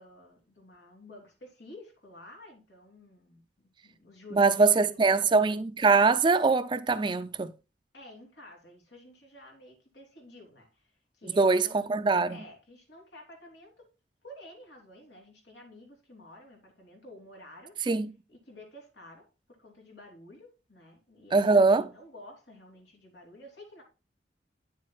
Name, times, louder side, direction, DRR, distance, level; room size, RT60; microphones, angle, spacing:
voice 1, 0.0-3.4 3.8-5.2 7.9-11.8 12.3-13.9 14.2-17.7 18.3-19.2 19.6-23.8, left 1 dB, 90° left, 3.1 m, -51 dB
voice 2, 4.3-7.5 11.4-12.4 17.9-18.1 21.3-21.9, right 4 dB, 25° right, 0.4 m, -23 dB
9.3 x 7.4 x 2.3 m
head